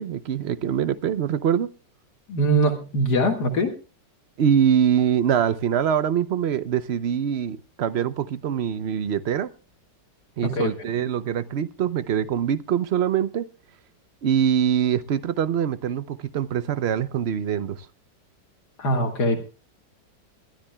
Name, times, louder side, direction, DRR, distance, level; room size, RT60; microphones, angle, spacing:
voice 1, 0.0-1.7 4.4-9.5 10.4-13.5 14.2-17.9, right 8 dB, 65° right, 0.6 m, -24 dB
voice 2, 2.3-3.7 10.4-10.7 18.8-19.4, right 1 dB, 65° left, 2.3 m, -22 dB
22.0 x 13.0 x 2.3 m
omnidirectional pair, 1.9 m